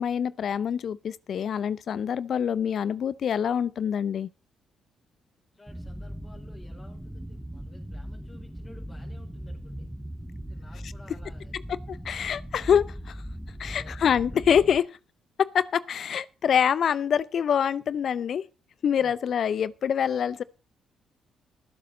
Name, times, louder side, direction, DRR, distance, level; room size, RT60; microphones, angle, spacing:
voice 1, 0.0-4.3 11.9-13.2 13.6-14.9 15.4-18.5 18.8-20.4, left 8 dB, 60° left, 0.5 m, -25 dB
voice 2, 5.5-9.9 10.5-11.7 13.6-14.0 19.0-19.1, left 2 dB, 30° left, 4.4 m, -53 dB
sound 1, 5.7-14.8, equal, 5° right, 1.4 m, -39 dB
19.0 x 7.8 x 4.1 m
hypercardioid pair, 45°, 0 cm